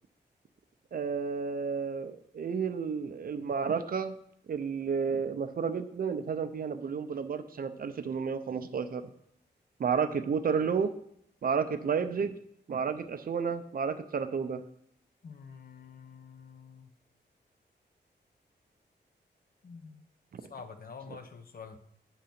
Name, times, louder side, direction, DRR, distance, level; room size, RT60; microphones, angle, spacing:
voice 1, 0.9-4.2 4.5-9.0 9.8-10.9 11.4-12.4 12.7-14.6 20.3-20.4, right 6 dB, 55° right, 9 dB, 0.5 m, -31 dB
voice 2, 15.2-16.9 19.6-20.0 20.5-21.8, left 5 dB, 55° left, 8 dB, 0.7 m, -47 dB
8.3 x 3.8 x 5.8 m, 0.69 s
wide cardioid pair, 140°, 18 cm